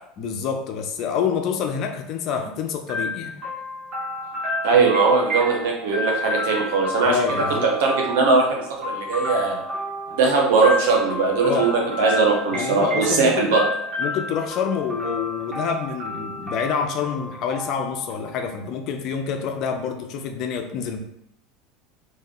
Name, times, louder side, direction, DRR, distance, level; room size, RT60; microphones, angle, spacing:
voice 1, 0.2-3.4 7.0-7.7 11.4-11.7 12.5-13.5 14.0-21.0, left 6 dB, 55° left, 5 dB, 0.5 m, -27 dB
sound 1, 2.9-18.7, left 1 dB, 35° right, 1.0 m, -31 dB
voice 2, 4.6-7.2 7.6-9.6 10.1-13.6, right 4 dB, 80° right, -1 dB, 0.7 m, -20 dB
2.4 x 2.2 x 3.5 m, 0.76 s
supercardioid pair, 105°, 0 cm